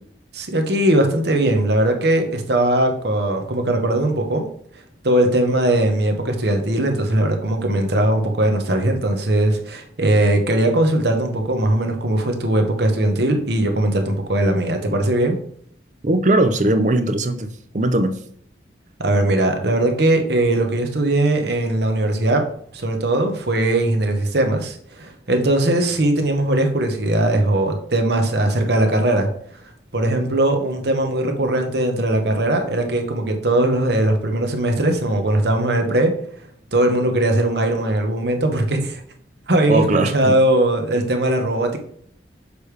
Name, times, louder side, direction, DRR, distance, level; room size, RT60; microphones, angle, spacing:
voice 1, 0.3-4.4 5.0-15.4 19.0-22.4 22.7-29.3 29.9-36.1 36.7-39.0 39.5-39.8 40.1-41.8, right 1 dB, 55° right, 4 dB, 1.1 m, -19 dB
voice 2, 16.0-17.5 17.7-18.2 39.7-40.4, right 2 dB, 40° right, 9 dB, 0.6 m, -19 dB
6.7 x 4.9 x 3.3 m, 0.63 s
head